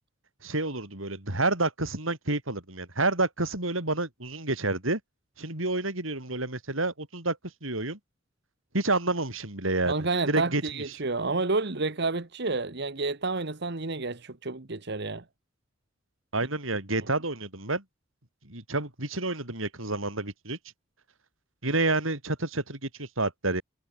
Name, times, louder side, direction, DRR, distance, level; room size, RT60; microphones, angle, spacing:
voice 1, 0.4-5.0 5.4-8.0 8.7-9.9 10.3-10.6 16.3-17.8 18.4-20.6 21.6-23.6, right 2 dB, 80° right, 7.2 m, -29 dB
voice 2, 9.9-15.2, right 3 dB, 55° right, 1.4 m, -30 dB
head